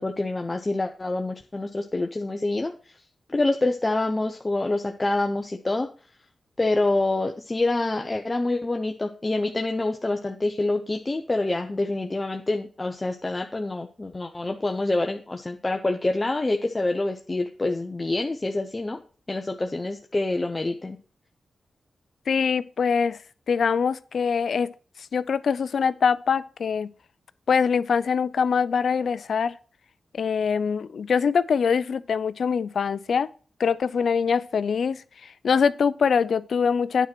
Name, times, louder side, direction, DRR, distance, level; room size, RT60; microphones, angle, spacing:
voice 1, 0.0-2.9 3.3-5.9 6.6-19.0 19.3-21.0, left 2 dB, 30° left, 0.8 m, -26 dB
voice 2, 22.3-23.2 23.5-24.7 25.1-26.9 27.5-29.5 30.1-33.3 33.6-37.1, left 6 dB, 75° left, 0.5 m, -23 dB
9.2 x 4.4 x 6.1 m
cardioid pair, 60°, 0 cm